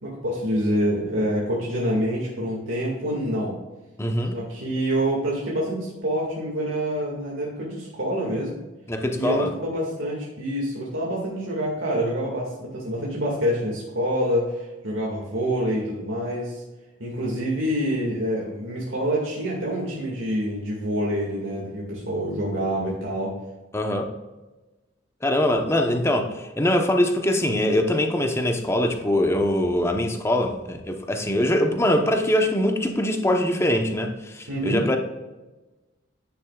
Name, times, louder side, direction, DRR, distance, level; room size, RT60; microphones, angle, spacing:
voice 1, 0.0-3.6 4.3-8.6 9.1-16.6 17.0-23.3 34.5-34.8, equal, 85° right, -4 dB, 2.2 m, -26 dB
voice 2, 4.0-4.4 8.9-9.5 23.7-24.1 25.2-35.0, left 1 dB, 15° left, 4 dB, 1.0 m, -23 dB
10.5 x 9.9 x 2.4 m, 1.1 s
head